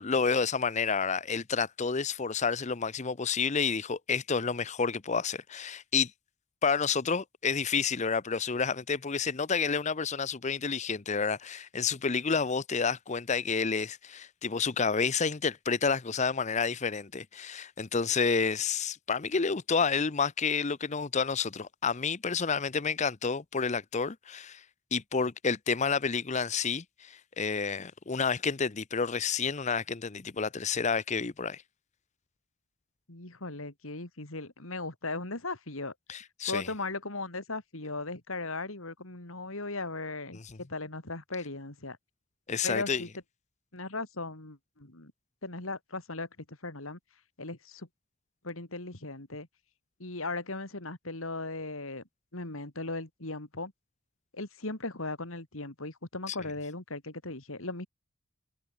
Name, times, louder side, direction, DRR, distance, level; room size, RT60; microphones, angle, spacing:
voice 1, 0.0-6.1 6.6-24.6 24.9-31.6 36.1-36.7 40.3-40.6 42.5-43.0 56.3-56.4, left 5 dB, 35° left, 0.7 m, -30 dB
voice 2, 33.1-35.9 36.5-42.0 42.6-43.1 43.7-45.1 45.4-47.0 47.4-47.9 48.4-49.5 50.0-52.0 52.3-53.7 54.3-57.9, left 3 dB, 70° left, 3.1 m, -37 dB
head